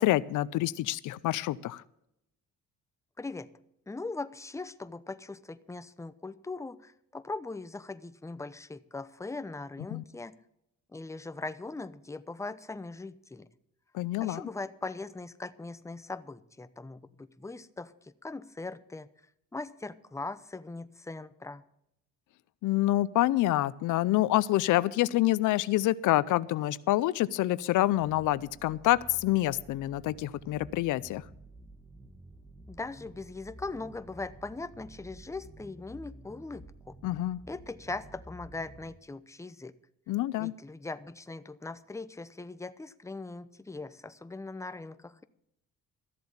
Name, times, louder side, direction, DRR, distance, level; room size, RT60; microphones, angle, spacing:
voice 1, 0.0-1.8 9.9-10.0 13.9-14.4 22.6-31.2 37.0-37.4 40.1-40.5, left 16 dB, 80° left, 18 dB, 0.5 m, -27 dB
voice 2, 3.2-3.5 3.9-10.4 10.9-13.5 14.2-19.1 19.5-21.6 32.7-37.0 37.5-39.7 40.4-45.2, left 3 dB, 10° left, 13 dB, 0.8 m, -40 dB
sound 1, 27.9-39.0, right 1 dB, 10° right, 1.9 m, -51 dB
13.5 x 7.7 x 7.3 m, 0.78 s
cardioid pair, 90°, 30 cm